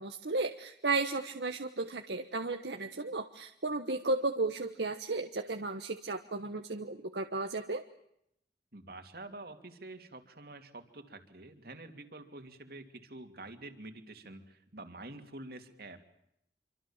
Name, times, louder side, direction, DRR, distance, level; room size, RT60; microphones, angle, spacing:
voice 1, 0.0-7.8, right 3 dB, 75° right, 6 dB, 1.3 m, -34 dB
voice 2, 8.7-16.0, right 2 dB, 60° right, 7 dB, 2.9 m, -48 dB
26.5 x 25.0 x 7.4 m, 0.78 s
head